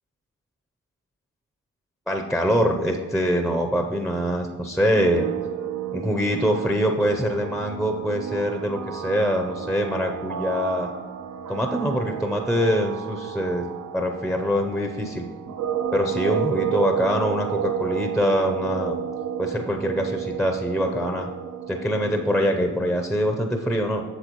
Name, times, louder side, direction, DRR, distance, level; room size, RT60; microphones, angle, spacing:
voice 1, 2.1-5.3 5.9-10.9 11.5-13.7 13.9-15.2 15.9-18.9 19.4-21.3 21.7-24.0, equal, ahead, 4 dB, 0.6 m, -24 dB
sound 1, 4.9-22.5, right 9 dB, 55° right, 0.6 m, -31 dB
8.1 x 6.3 x 3.0 m, 1.5 s
supercardioid pair, 55°, 32 cm